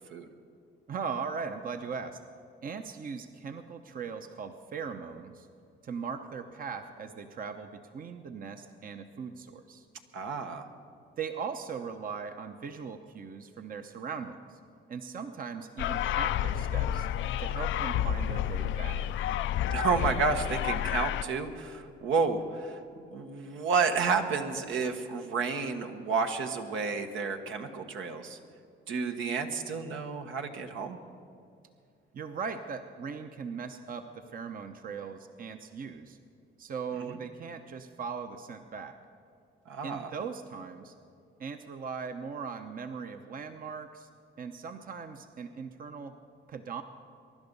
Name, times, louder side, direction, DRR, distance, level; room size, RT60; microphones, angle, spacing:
voice 1, 0.9-2.2 2.6-5.5 5.8-9.8 11.2-14.6 14.9-17.1 17.4-19.0 32.1-36.2 36.6-39.0 39.8-40.9 41.4-44.1 44.4-46.2 46.5-46.8, right 5 dB, 45° right, 7 dB, 0.8 m, -39 dB
voice 2, 10.1-10.6 19.7-22.8 23.1-28.4 28.9-31.0 37.0-37.2 39.7-40.1, right 5 dB, 80° right, 5 dB, 1.3 m, -31 dB
sound 1, 15.8-21.2, left 10 dB, 75° left, 0.4 m, -30 dB
23.5 x 11.0 x 5.4 m, 2.4 s
cardioid pair, 90°, 20 cm